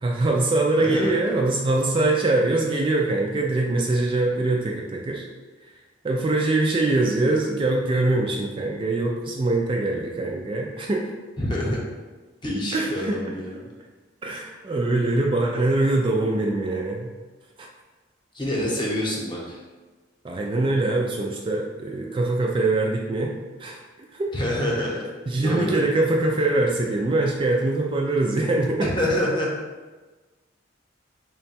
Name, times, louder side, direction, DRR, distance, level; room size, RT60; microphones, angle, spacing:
voice 1, 0.0-5.3 6.0-11.1 12.7-13.3 14.2-17.1 17.6-17.7 20.2-23.3 23.6-23.8 24.1-24.3 25.3-28.9, right 2 dB, 25° right, 0 dB, 0.3 m, -23 dB
voice 2, 0.7-1.1 11.4-11.9 12.4-13.7 18.3-19.6 24.3-25.0 25.4-25.7 28.8-29.5, left 1 dB, 25° left, -4 dB, 0.8 m, -26 dB
3.7 x 2.2 x 4.2 m, 1.3 s
head